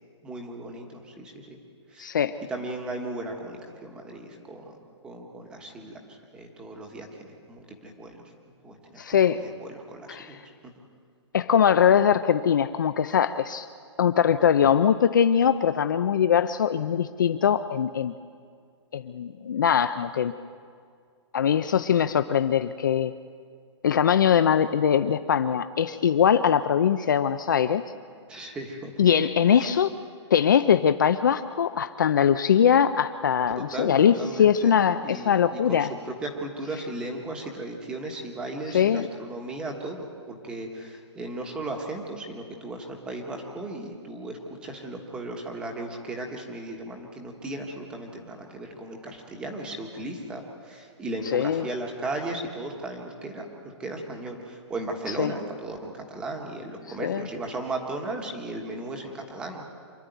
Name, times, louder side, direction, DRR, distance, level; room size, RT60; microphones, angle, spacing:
voice 1, 0.2-1.6 1.9-2.1 2.5-4.8 5.0-7.1 7.5-8.2 8.6-9.0 9.3-10.4 28.3-28.9 29.5-29.7 33.5-53.5 53.8-59.7, right 2 dB, 5° right, 2 dB, 1.3 m, -36 dB
voice 2, 2.0-2.3 9.0-9.4 10.1-10.3 11.3-13.7 14.0-18.1 18.9-20.3 21.3-23.1 23.8-27.8 29.0-29.9 30.3-35.9 38.7-39.1 51.3-51.7 55.1-55.3 57.0-57.3, left 8 dB, 40° left, 11 dB, 0.5 m, -22 dB
26.5 x 11.5 x 9.2 m, 2.2 s
hypercardioid pair, 175°, 15 cm